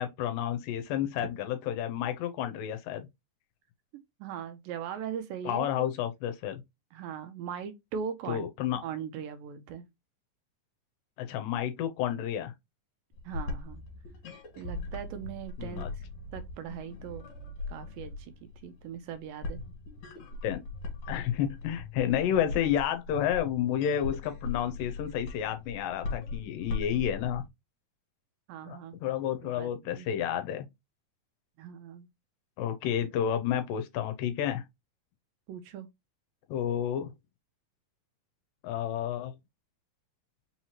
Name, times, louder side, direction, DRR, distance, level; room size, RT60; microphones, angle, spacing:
voice 1, 0.0-3.1 5.5-6.6 8.3-8.8 11.2-12.5 15.6-15.9 20.4-20.6 21.1-27.4 28.7-30.7 32.6-34.6 36.5-37.1 38.6-39.3, left 10 dB, 80° left, 2.2 m, -30 dB
voice 2, 4.2-5.9 6.9-8.5 8.8-9.9 13.3-13.8 14.6-15.9 16.3-17.3 17.7-19.6 28.5-28.9 29.4-30.1 31.6-32.1 35.5-35.9, right 8 dB, 80° right, 2.2 m, -40 dB
sound 1, 13.1-27.5, left 3 dB, 55° left, 2.4 m, -40 dB
5.5 x 3.0 x 2.8 m
omnidirectional pair, 4.2 m